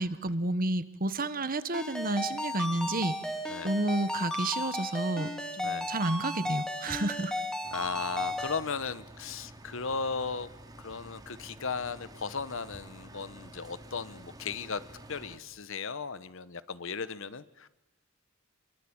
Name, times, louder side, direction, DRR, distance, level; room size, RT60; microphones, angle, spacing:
voice 1, 0.0-3.2 3.6-7.3, right 2 dB, 45° right, 13 dB, 1.3 m, -31 dB
Ringtone, 1.7-8.6, left 1 dB, 5° left, 2.1 m, -35 dB
sound 1, 7.6-15.4, right 1 dB, 20° right, 2.7 m, -50 dB
voice 2, 7.7-10.5 10.8-14.8 15.1-17.7, left 5 dB, 65° left, 15 dB, 1.0 m, -36 dB
27.0 x 23.0 x 8.8 m, 0.93 s
head